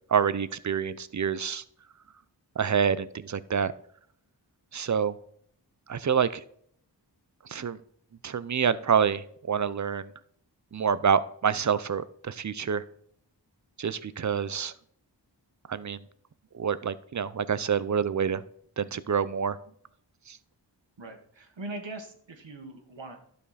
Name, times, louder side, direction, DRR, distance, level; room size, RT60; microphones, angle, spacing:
voice 1, 0.1-1.6 2.6-3.7 4.7-5.1 5.9-6.4 7.5-7.8 8.2-10.1 10.7-12.8 13.8-14.7 15.7-16.0 16.5-18.4 18.8-19.6 20.3-20.4, right 7 dB, 40° right, 16 dB, 0.5 m, -27 dB
voice 2, 21.0-23.2, right 2 dB, 80° right, 4 dB, 1.6 m, -41 dB
12.0 x 5.2 x 4.1 m, 0.63 s
wide cardioid pair, 45°, 44 cm